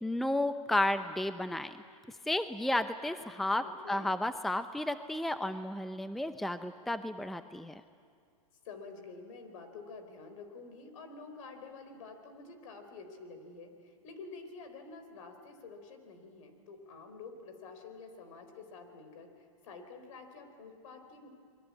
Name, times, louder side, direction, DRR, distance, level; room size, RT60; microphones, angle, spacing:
voice 1, 0.0-1.8 2.3-7.8, left 1 dB, ahead, 11 dB, 0.7 m, -32 dB
voice 2, 3.6-4.1 8.6-21.3, left 4 dB, 65° left, 7 dB, 4.5 m, -49 dB
28.5 x 21.5 x 8.5 m, 2.2 s
hypercardioid pair, 125°, 18 cm